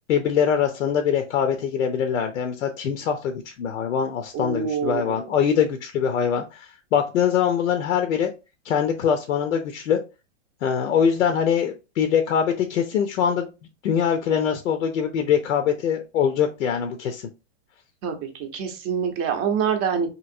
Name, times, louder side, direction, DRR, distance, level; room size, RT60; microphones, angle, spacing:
voice 1, 0.1-8.3 8.6-10.0 10.6-13.5 13.8-17.3, left 8 dB, 85° left, 6 dB, 0.7 m, -23 dB
voice 2, 4.3-5.2 18.0-18.2 18.5-20.1, right 7 dB, 25° right, 5 dB, 0.6 m, -25 dB
3.0 x 2.7 x 2.5 m, 0.29 s
hypercardioid pair, 145°, 39 cm